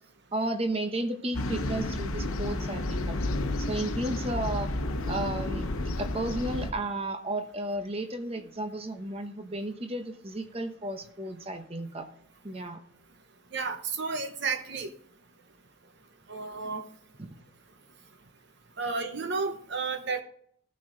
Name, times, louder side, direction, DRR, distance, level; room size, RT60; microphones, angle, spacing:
voice 1, 0.3-3.1 3.6-4.7 5.1-5.7 6.0-12.1 12.4-12.8 17.2-17.3, right 1 dB, 30° right, 6 dB, 0.9 m, -33 dB
sound 1, 1.3-6.7, left 2 dB, 80° left, 0.9 m, -31 dB
voice 2, 13.5-14.9 16.3-16.8 18.8-20.2, right 4 dB, 55° right, 7 dB, 0.8 m, -32 dB
15.0 x 6.1 x 3.9 m, 0.64 s
head